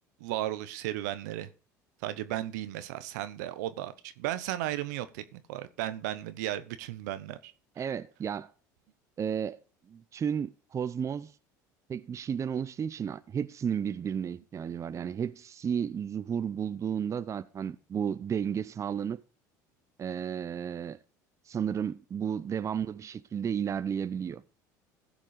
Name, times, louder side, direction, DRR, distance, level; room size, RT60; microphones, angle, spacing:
voice 1, 0.2-1.5 2.0-7.5, right 13 dB, 80° right, 0.8 m, -35 dB
voice 2, 7.8-8.5 9.2-9.6 9.9-11.3 11.9-19.2 20.0-21.0 21.5-24.4, right 8 dB, 35° right, 0.6 m, -33 dB
15.0 x 5.2 x 5.0 m
hypercardioid pair, 80°, 9 cm